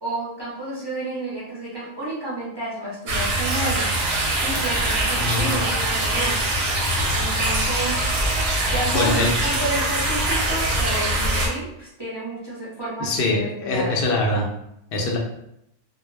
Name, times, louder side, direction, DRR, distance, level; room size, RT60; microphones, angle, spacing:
voice 1, 0.0-3.9 4.4-6.4 7.1-8.0 8.6-14.0, right 2 dB, 25° right, -7 dB, 0.6 m, -31 dB
sound 1, 3.1-11.5, right 1 dB, 65° right, 0.8 m, -23 dB
voice 2, 5.2-5.6 8.9-9.3 13.0-14.5 14.9-15.2, left 2 dB, 60° left, 0 dB, 0.7 m, -23 dB
2.2 x 2.1 x 3.2 m, 0.78 s
omnidirectional pair, 1.2 m